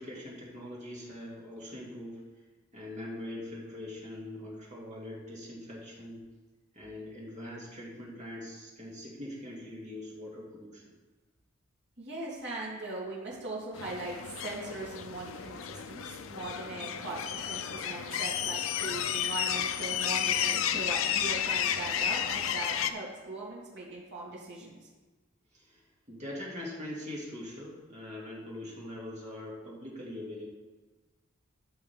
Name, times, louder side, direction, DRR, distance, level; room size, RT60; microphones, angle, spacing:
voice 1, 0.0-2.2 2.7-6.2 6.7-10.8 25.5-30.4, left 1 dB, 35° right, -4 dB, 2.5 m, -42 dB
voice 2, 12.0-24.7, right 2 dB, 60° right, -6 dB, 3.0 m, -40 dB
sound 1, 13.7-22.9, left 9 dB, 70° left, 0.5 m, -32 dB
13.5 x 5.7 x 3.6 m, 1.3 s
head